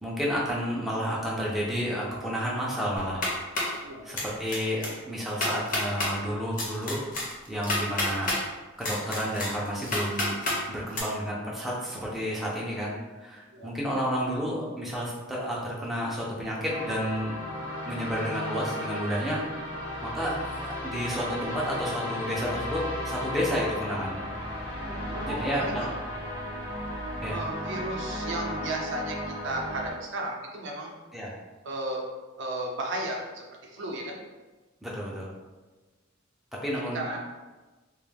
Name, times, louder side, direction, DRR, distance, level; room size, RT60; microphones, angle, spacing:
voice 1, 0.0-3.2 3.5-3.6 4.0-7.0 7.5-8.3 8.8-12.9 13.2-17.4 17.9-19.8 20.0-24.2 25.2-25.9 27.2-27.4 31.1-31.3 34.8-35.3 36.6-37.0, equal, ahead, -6 dB, 0.3 m, -31 dB
sound 1, 3.0-3.8 4.2-4.6 4.8-4.9 5.3-6.1 6.6-8.4 8.8-10.6 10.9-11.0, left 2 dB, 40° left, 0.6 m, -29 dB
sound 2, 16.7-29.9, left 1 dB, 70° left, 0.9 m, -35 dB
voice 2, 24.8-25.9 27.2-29.2 29.4-30.9 31.6-32.1 32.4-34.2 36.9-37.2, right 2 dB, 60° right, 0 dB, 0.5 m, -34 dB
2.2 x 2.0 x 3.2 m, 1.2 s
head